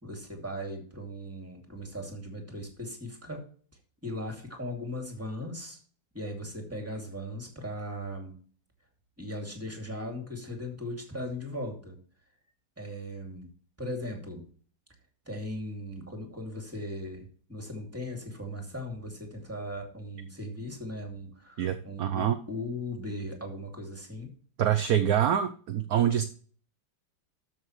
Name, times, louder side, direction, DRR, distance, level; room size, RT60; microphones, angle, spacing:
voice 1, 0.0-3.5 4.0-5.8 6.1-8.4 9.2-12.0 12.8-13.5 13.8-14.5 15.2-24.3, left 1 dB, 5° right, 2 dB, 2.5 m, -38 dB
voice 2, 21.6-22.4 24.6-26.2, right 10 dB, 60° right, 8 dB, 1.1 m, -25 dB
13.0 x 6.4 x 3.2 m, 0.43 s
omnidirectional pair, 2.0 m